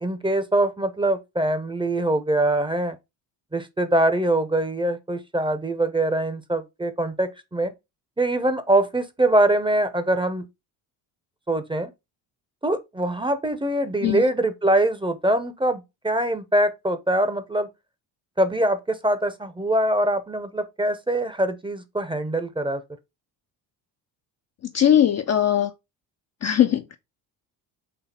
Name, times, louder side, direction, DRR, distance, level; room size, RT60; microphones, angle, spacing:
voice 1, 0.0-3.0 3.5-7.7 8.2-10.5 11.5-11.9 12.6-17.7 18.4-22.8, right 1 dB, 10° right, 0.7 m, -23 dB
voice 2, 24.7-25.7 26.4-27.0, left 10 dB, 35° left, 0.4 m, -19 dB
4.2 x 2.7 x 4.2 m
hypercardioid pair, 60°, 49 cm